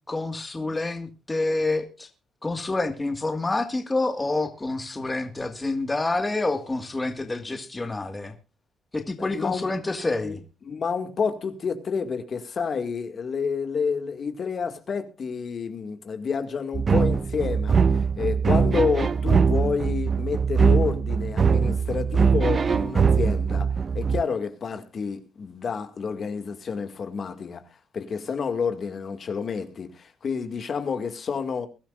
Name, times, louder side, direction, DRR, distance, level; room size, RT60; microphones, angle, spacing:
voice 1, 0.0-2.1 2.4-8.3 8.9-10.4, left 2 dB, 20° left, 1.8 m, -28 dB
voice 2, 9.2-9.7 10.2-10.4 10.7-27.6 27.9-31.7, left 6 dB, 50° left, 2.1 m, -29 dB
sound 1, 16.7-24.2, right 6 dB, 40° right, 0.6 m, -22 dB
22.0 x 12.5 x 2.5 m
cardioid pair, 90°, 0 cm